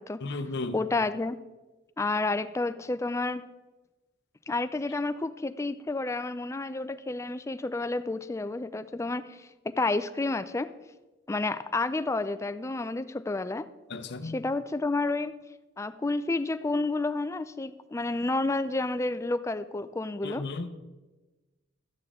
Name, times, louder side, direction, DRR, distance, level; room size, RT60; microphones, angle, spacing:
voice 1, 0.2-0.8 13.9-14.4 20.2-20.7, left 3 dB, 60° left, 9 dB, 0.7 m, -34 dB
voice 2, 0.7-1.4 2.0-3.4 4.5-9.5 9.8-10.7 11.3-13.7 14.2-15.4 15.8-20.4, left 2 dB, 15° left, 12 dB, 0.3 m, -30 dB
12.5 x 8.8 x 3.6 m, 1.2 s
head